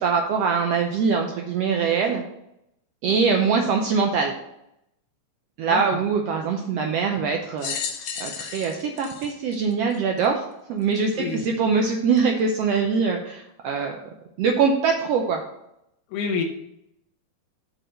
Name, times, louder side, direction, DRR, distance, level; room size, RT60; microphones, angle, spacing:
voice 1, 0.0-2.2 3.0-4.3 5.6-7.7 8.2-10.4 10.7-14.0 14.4-15.4, right 5 dB, 75° right, 2 dB, 1.5 m, -23 dB
voice 2, 5.7-6.0 11.2-11.5 16.1-16.4, left 5 dB, 85° left, 3 dB, 2.4 m, -28 dB
sound 1, 7.6-10.3 11.0-11.1 12.2-12.3, left 7 dB, 70° left, 1.4 m, -33 dB
6.2 x 4.8 x 6.4 m, 0.81 s
omnidirectional pair, 3.4 m